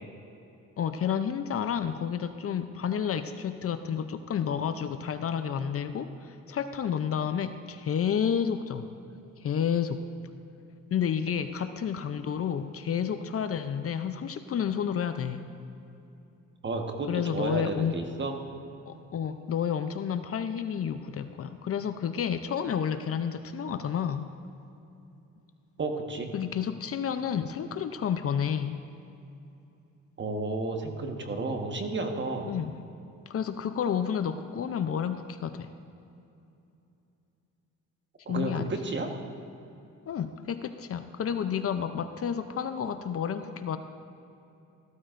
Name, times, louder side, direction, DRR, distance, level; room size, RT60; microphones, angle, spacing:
voice 1, 0.8-8.9 9.4-10.0 10.9-15.4 17.1-17.9 18.9-24.3 26.3-28.8 32.5-32.7 33.3-35.7 38.3-38.7 40.1-43.8, left 8 dB, 45° left, 10 dB, 0.6 m, -30 dB
voice 2, 16.6-18.4 25.8-26.3 30.2-32.5 38.3-39.1, right 3 dB, 35° right, 4 dB, 1.4 m, -32 dB
14.5 x 13.0 x 2.6 m, 2.8 s
cardioid pair, 85°, 32 cm